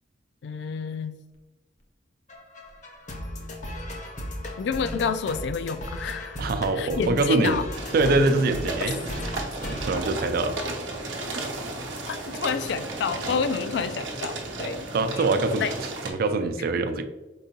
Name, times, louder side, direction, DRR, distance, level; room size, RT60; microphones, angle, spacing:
voice 1, 0.4-1.2 4.6-6.5 6.8-7.6 12.1-14.9 15.2-15.3 15.6-15.7, left 6 dB, 65° left, 11 dB, 0.3 m, -29 dB
sound 1, 2.3-10.9, left 1 dB, 40° left, 0.7 m, -36 dB
voice 2, 6.4-7.6 7.9-9.0 9.7-10.6 14.9-17.1, right 3 dB, 50° right, 8 dB, 0.3 m, -24 dB
sound 2, 7.7-16.1, right 2 dB, 80° right, 0.8 m, -34 dB
4.5 x 3.8 x 2.8 m, 1.2 s
head